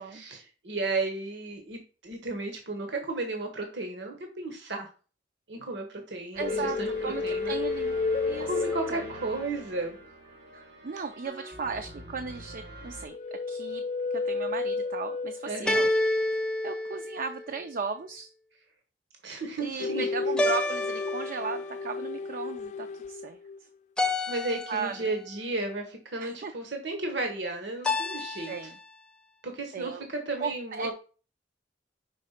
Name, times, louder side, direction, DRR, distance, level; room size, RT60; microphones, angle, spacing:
voice 1, 0.1-4.9 5.5-7.6 8.4-10.0 15.4-15.8 19.2-20.1 24.3-28.5 29.4-30.9, right 2 dB, 75° right, 3 dB, 1.2 m, -34 dB
sound 1, 6.3-13.1, right 1 dB, 90° right, 2.5 m, -45 dB
sound 2, 6.4-9.6 13.1-15.7 19.8-23.6, left 4 dB, 40° left, 0.3 m, -32 dB
voice 2, 6.4-8.0 8.3-8.5 8.9-9.1 10.5-13.8 14.1-15.9 16.6-18.3 19.6-23.4 24.7-25.1 26.2-26.5 28.1-28.8 29.7-30.1 30.4-30.9, right 5 dB, 50° right, 7 dB, 0.5 m, -36 dB
sound 3, 11.3-11.9 15.7-17.7 20.4-21.8 24.0-25.2 27.8-28.8, left 2 dB, 5° left, 0.6 m, -30 dB
5.3 x 3.7 x 5.7 m, 0.36 s
head